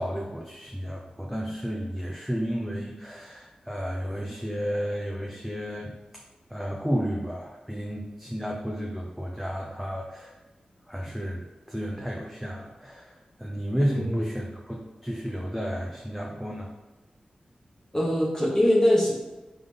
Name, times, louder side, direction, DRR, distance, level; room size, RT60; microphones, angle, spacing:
voice 1, 0.0-6.0 6.5-10.4 10.9-16.7, equal, ahead, -1 dB, 0.6 m, -32 dB
voice 2, 17.9-19.1, equal, 25° left, -5 dB, 1.2 m, -22 dB
3.8 x 3.7 x 3.4 m, 1.1 s
cardioid pair, 55°, 3 cm